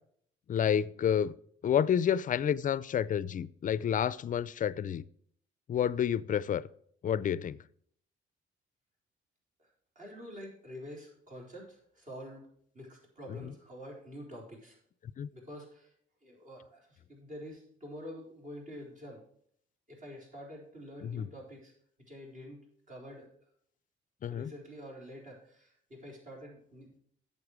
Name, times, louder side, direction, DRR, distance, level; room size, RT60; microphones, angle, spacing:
voice 1, 0.5-1.3 1.6-5.0 5.7-6.6 7.0-7.6 15.2-15.3 21.0-21.3 24.2-24.5, left 9 dB, 40° left, 0.4 m, -29 dB
voice 2, 10.0-12.5 12.7-14.8 15.3-15.9 16.2-19.2 19.9-21.7 22.1-23.3 24.3-27.0, equal, 40° right, 4.1 m, -47 dB
8.7 x 6.9 x 4.8 m
cardioid pair, 90°, 20 cm